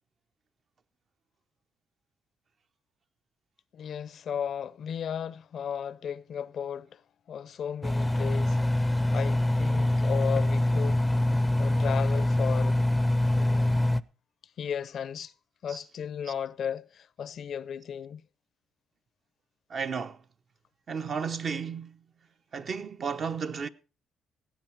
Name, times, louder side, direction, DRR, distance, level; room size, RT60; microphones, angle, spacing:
voice 1, 3.7-7.0 7.3-11.0 11.6-12.8 13.4-13.9 14.6-15.3 15.6-18.2, left 8 dB, 60° left, 0.5 m, -35 dB
Engine, 7.8-14.0, left 1 dB, 5° left, 0.5 m, -25 dB
voice 2, 19.7-20.2 20.9-22.0 22.5-23.7, right 6 dB, 50° right, 0.8 m, -33 dB
17.5 x 8.3 x 4.5 m
cardioid pair, 90°, 0 cm